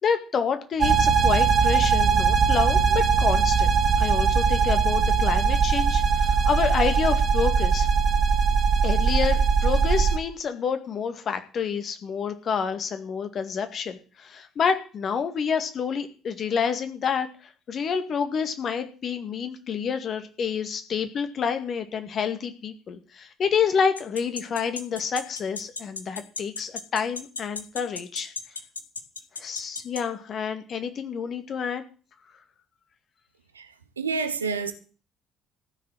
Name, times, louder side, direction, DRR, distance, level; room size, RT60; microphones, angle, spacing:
voice 1, 0.0-7.9 8.8-17.3 17.7-28.3 29.4-31.8, left 6 dB, 45° left, 2.1 m, -28 dB
sound 1, 0.8-10.2, right 6 dB, 40° right, 2.2 m, -21 dB
sound 2, 24.0-30.0, left 4 dB, 85° left, 1.0 m, -33 dB
voice 2, 33.5-34.7, right 5 dB, 80° right, 1.1 m, -29 dB
15.0 x 6.6 x 9.1 m
figure-of-eight pair, 50°, 0 cm